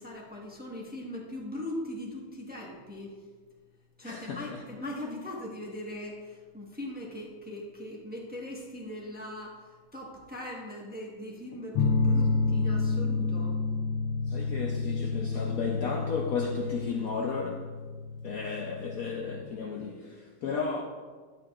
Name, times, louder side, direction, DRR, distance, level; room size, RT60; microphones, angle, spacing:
voice 1, 0.0-3.1 4.0-9.6 9.9-13.6, left 1 dB, 5° right, 0.8 m, -40 dB
voice 2, 4.0-4.6 11.5-11.6 14.3-17.7 18.2-20.8, left 5 dB, 85° left, 0.7 m, -34 dB
sound 1, 11.7-19.4, left 4 dB, 70° left, 1.1 m, -29 dB
11.0 x 8.7 x 2.4 m
omnidirectional pair, 2.3 m